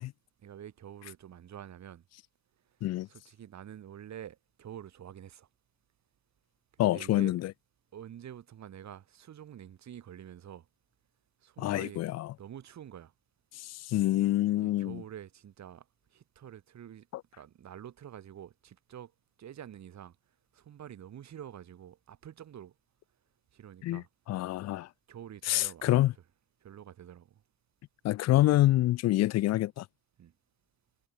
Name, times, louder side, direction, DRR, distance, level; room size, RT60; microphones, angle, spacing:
voice 1, 0.4-2.0 3.1-5.5 6.8-7.4 7.9-10.6 11.4-12.1 12.4-13.1 14.5-15.8 16.1-17.1 17.4-19.1 19.4-20.1 20.5-22.7 23.5-24.1 25.1-26.2 26.6-27.4 30.2-30.3, right 10 dB, 65° right, 6.1 m, -47 dB
voice 2, 6.8-7.4 11.6-12.3 13.7-15.0 23.8-24.0 24.3-24.9 25.5-26.1 28.0-29.8, left 15 dB, 60° left, 0.4 m, -26 dB
cardioid pair, 90°, 30 cm